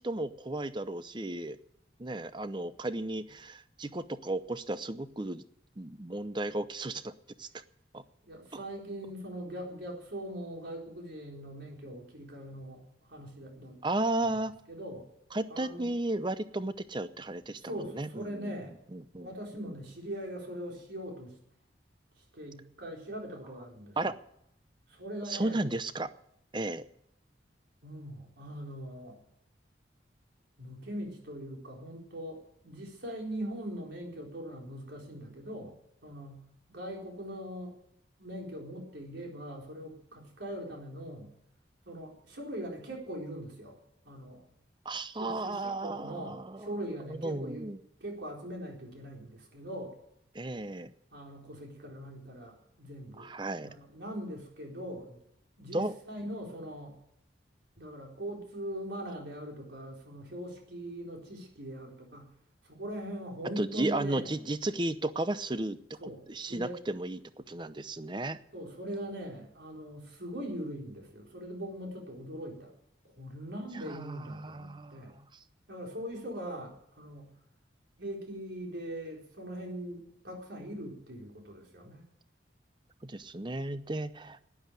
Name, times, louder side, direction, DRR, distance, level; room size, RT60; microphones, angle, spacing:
voice 1, 0.0-1.6 2.0-5.4 5.8-7.1 7.4-7.5 7.9-8.0 13.8-14.5 15.3-17.6 17.9-18.5 18.9-19.3 24.0-24.2 25.3-26.1 26.5-26.8 44.8-46.7 47.2-47.8 50.3-50.9 53.2-53.7 55.7-55.9 63.6-66.0 66.3-67.2 67.5-68.4 73.9-75.2 83.0-84.4, right 2 dB, 25° right, 13 dB, 0.7 m, -34 dB
voice 2, 8.3-13.8 14.2-14.3 14.7-15.1 15.5-15.9 17.6-18.8 19.2-21.3 22.2-24.0 24.9-25.7 27.8-29.2 30.6-35.7 36.0-37.8 38.2-41.3 41.9-43.8 44.0-44.5 45.2-47.7 48.0-49.9 51.1-53.3 53.6-55.2 55.6-57.0 57.8-62.3 62.6-64.3 66.0-66.8 68.5-72.7 73.0-75.2 75.7-77.3 78.0-82.0, equal, 75° right, 0 dB, 4.3 m, -41 dB
12.0 x 10.5 x 9.2 m, 0.77 s
head